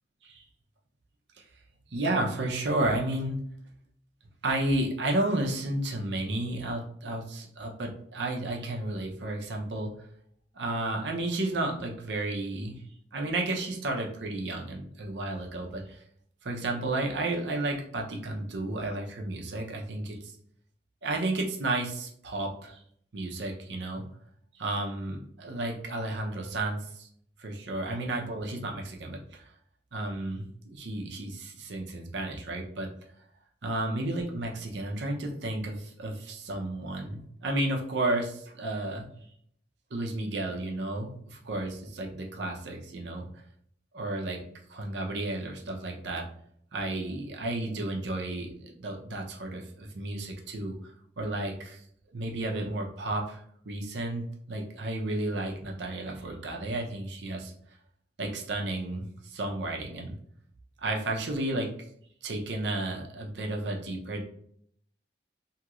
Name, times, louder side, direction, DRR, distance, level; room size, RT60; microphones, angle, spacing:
voice 1, 1.9-3.4 4.4-9.9 10.5-12.8 13.1-16.0 16.4-20.4 21.0-22.8 23.1-24.1 24.5-27.1 27.4-29.5 29.9-32.9 33.6-39.1 39.9-43.3 43.9-44.4 44.7-46.3 46.7-51.8 52.1-57.5 58.2-60.2 60.8-61.7 62.2-64.2, right 2 dB, 75° right, 1 dB, 0.7 m, -32 dB
3.0 x 2.8 x 2.4 m, 0.65 s
head